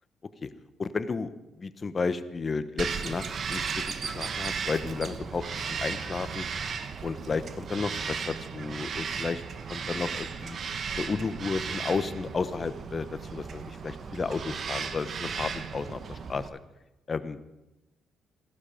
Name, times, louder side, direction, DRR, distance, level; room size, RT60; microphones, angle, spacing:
voice 1, 0.8-1.3 1.6-3.7 4.0-5.4 5.7-6.5 7.0-9.4 9.7-10.6 10.9-16.5 17.1-17.4, left 4 dB, 35° left, 12 dB, 0.9 m, -32 dB
Bird vocalization bird call bird song, 2.8-16.5, right 6 dB, 50° right, 1.0 m, -35 dB
15.5 x 12.0 x 5.0 m, 0.98 s
cardioid pair, 90°, 0 cm